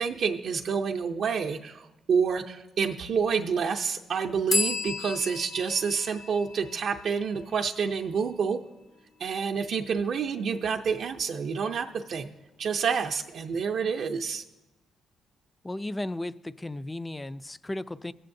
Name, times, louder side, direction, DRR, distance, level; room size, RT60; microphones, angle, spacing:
voice 1, 0.0-8.6 9.2-12.3 12.6-14.4, right 6 dB, 65° right, 2 dB, 0.5 m, -28 dB
sound 1, 4.5-8.1, left 3 dB, 50° left, 0.6 m, -33 dB
voice 2, 15.6-18.1, left 1 dB, 15° left, 16 dB, 0.3 m, -35 dB
17.5 x 7.6 x 2.6 m, 1.0 s
cardioid pair, 85°, 0 cm